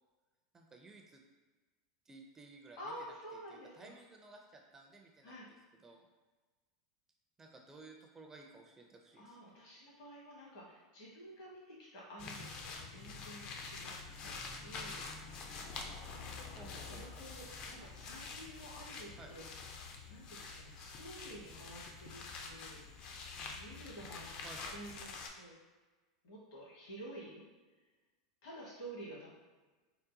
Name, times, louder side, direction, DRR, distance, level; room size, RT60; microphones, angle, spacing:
voice 1, 0.5-1.2 2.1-3.1 3.5-5.5 5.8-6.1 7.4-9.4 9.8-10.0 12.2-12.4 16.6-17.0 19.2-19.3 21.4-21.7 24.4-24.8, right 3 dB, 20° right, 2 dB, 0.4 m, -56 dB
voice 2, 2.8-3.9 5.2-5.4 9.2-13.9 14.2-15.1 16.1-17.5 17.8-19.4 20.1-22.8 23.6-25.5 26.2-27.4 28.4-29.3, right 1 dB, 70° left, -5 dB, 1.4 m, -51 dB
sound 1, 12.2-25.3, left 4 dB, 45° left, 0.4 m, -47 dB
3.8 x 2.1 x 2.7 m, 1.3 s
hypercardioid pair, 100°, 2 cm